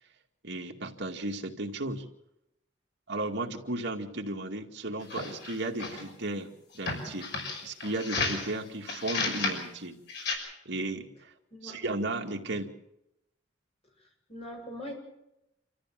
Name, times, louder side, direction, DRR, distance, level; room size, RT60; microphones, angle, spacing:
voice 1, 0.4-2.0 3.1-7.3 7.6-10.0 10.7-11.3 11.6-12.7, right 2 dB, 65° right, 1 dB, 2.4 m, -35 dB
sound 1, 5.0-6.1 6.8-8.5 8.9-9.6 10.1-10.3, left 3 dB, 60° left, 6.0 m, -33 dB
voice 2, 14.0-14.9, equal, 35° left, 0 dB, 7.6 m, -42 dB
27.0 x 14.0 x 7.8 m, 0.84 s
head